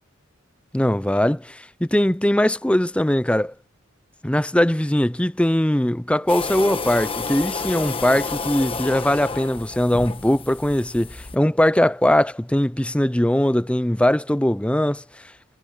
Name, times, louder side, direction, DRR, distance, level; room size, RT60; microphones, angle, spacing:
voice 1, 0.7-3.5 4.2-15.0, left 1 dB, 5° left, 0.6 m, -20 dB
sound 1, 6.3-11.4, left 4 dB, 25° left, 1.3 m, -30 dB
head